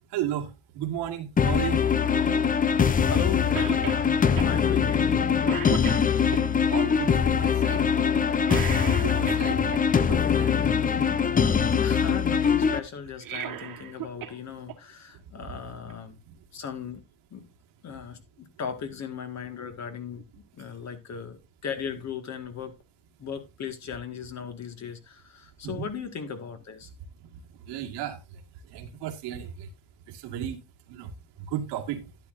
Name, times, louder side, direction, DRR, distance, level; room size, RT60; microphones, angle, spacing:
voice 1, 0.1-1.8 6.7-7.9 8.5-10.6 15.4-15.8 16.3-16.4 25.6-25.8 27.2-27.3 27.7-29.7 30.1-30.6 30.9-31.1 31.4-32.1, right 10 dB, 70° right, 1.9 m, -35 dB
sound 1, 1.4-12.8, left 7 dB, 20° left, 0.7 m, -23 dB
voice 2, 3.1-5.8 9.5-9.7 10.9-11.0 11.8-16.2 16.5-17.0 17.3-17.5 17.8-20.2 20.5-22.8 23.2-26.9, left 7 dB, 40° left, 1.9 m, -37 dB
Cough, 3.6-4.0 4.4-4.5 5.0-5.2 5.5-6.4 8.4-9.8 13.1-14.4 14.7-14.8 15.9-16.0, right 11 dB, 50° right, 1.7 m, -35 dB
12.0 x 10.0 x 2.6 m
cardioid pair, 110°, 42 cm